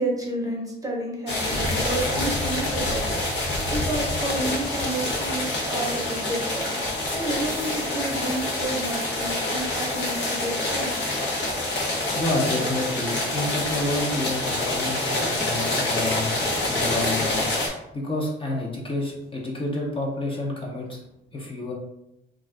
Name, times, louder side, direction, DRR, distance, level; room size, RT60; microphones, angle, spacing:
voice 1, 0.0-3.2 3.7-6.7 7.1-10.9, right 2 dB, 15° right, -1 dB, 0.8 m, -30 dB
sound 1, 1.3-17.7, left 2 dB, 65° left, 0.9 m, -26 dB
voice 2, 12.1-21.0 21.3-21.7, left 2 dB, 25° left, -2 dB, 0.7 m, -29 dB
2.4 x 2.4 x 3.3 m, 0.83 s
cardioid pair, 90°, 20 cm